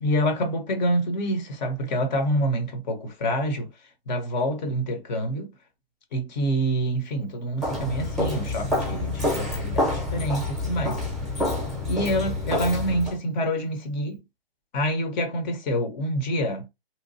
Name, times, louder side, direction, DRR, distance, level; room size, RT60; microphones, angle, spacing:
voice 1, 0.0-3.7 4.1-5.5 6.1-11.0 11.9-14.2 14.7-16.7, equal, 45° left, 1.0 m, -27 dB
Walk footsteps, 7.6-13.2, left 2 dB, ahead, 0.8 m, -27 dB
2.9 x 2.2 x 2.7 m
hypercardioid pair, 140°, 30 cm